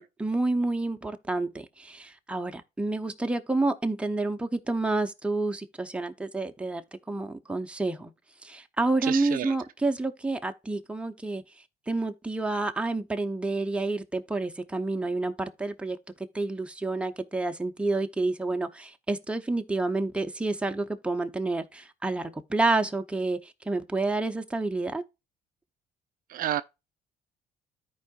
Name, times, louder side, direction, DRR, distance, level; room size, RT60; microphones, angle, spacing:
voice 1, 0.0-8.1 8.4-11.4 11.9-16.0 16.3-25.0, right 2 dB, 5° right, 0.8 m, -29 dB
voice 2, 9.0-9.6 26.3-26.6, right 12 dB, 55° right, 0.4 m, -30 dB
13.5 x 4.7 x 2.4 m
cardioid pair, 110°, 17 cm